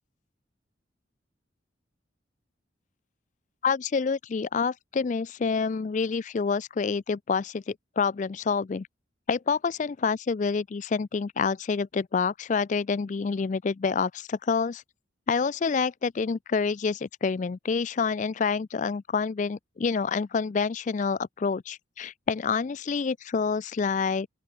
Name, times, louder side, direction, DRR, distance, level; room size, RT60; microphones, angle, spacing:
voice 1, 3.6-8.9 9.3-14.8 15.3-24.3, left 5 dB, 40° left, 0.3 m, -27 dB
open air
head